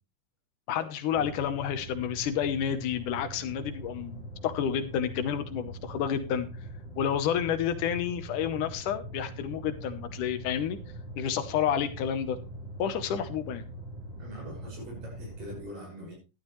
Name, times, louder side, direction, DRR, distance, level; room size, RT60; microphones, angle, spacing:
voice 1, 0.7-6.5 7.0-10.8 11.2-12.4 12.8-13.7, left 9 dB, 75° left, 10 dB, 2.4 m, -30 dB
sound 1, 1.1-15.6, right 1 dB, 20° right, 3.7 m, -42 dB
voice 2, 14.2-16.1, equal, 75° right, 0 dB, 7.5 m, -43 dB
12.0 x 12.0 x 3.1 m, 0.30 s
omnidirectional pair, 3.8 m